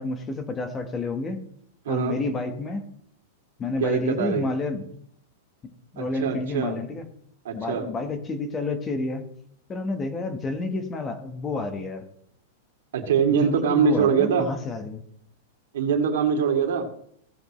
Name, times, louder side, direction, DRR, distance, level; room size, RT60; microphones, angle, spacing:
voice 1, 0.0-1.4 1.9-2.8 3.6-4.9 5.9-7.1 7.5-9.2 9.7-12.1 13.4-15.0, left 3 dB, 15° left, 7 dB, 1.2 m, -29 dB
voice 2, 1.8-2.2 3.8-4.5 6.0-6.8 7.4-7.9 12.9-14.5 15.7-16.9, right 6 dB, 70° right, 3 dB, 2.6 m, -23 dB
17.5 x 7.9 x 3.1 m, 0.67 s
supercardioid pair, 170°, 0 cm